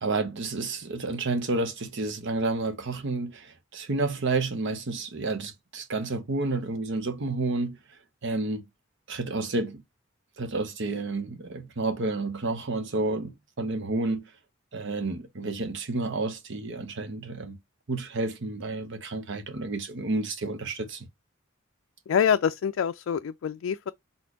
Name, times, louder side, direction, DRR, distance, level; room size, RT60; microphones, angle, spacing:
voice 1, 0.0-7.8 8.2-8.6 9.1-9.8 10.4-14.3 14.7-17.6 17.9-21.1, right 3 dB, 65° right, 0.9 m, -30 dB
voice 2, 22.1-23.9, left 8 dB, 70° left, 0.3 m, -25 dB
4.2 x 3.6 x 2.8 m
head